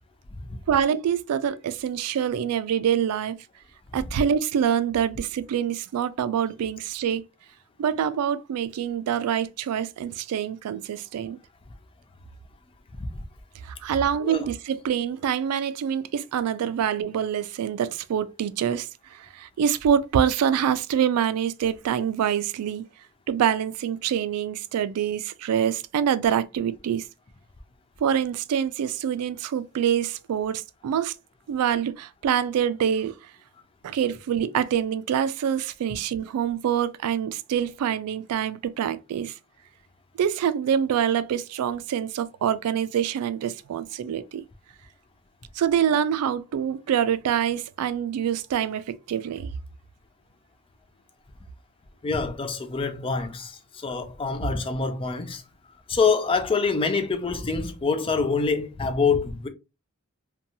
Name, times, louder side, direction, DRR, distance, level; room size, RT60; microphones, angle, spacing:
voice 1, 0.7-3.4 3.9-7.2 7.8-11.4 13.6-22.8 23.3-27.1 28.0-31.1 31.5-33.1 33.8-39.3 40.2-44.5 45.6-49.5, right 8 dB, 75° right, 0.3 m, -25 dB
voice 2, 52.0-55.4 55.9-59.5, left 4 dB, 25° left, 0.4 m, -25 dB
2.7 x 2.2 x 2.6 m
head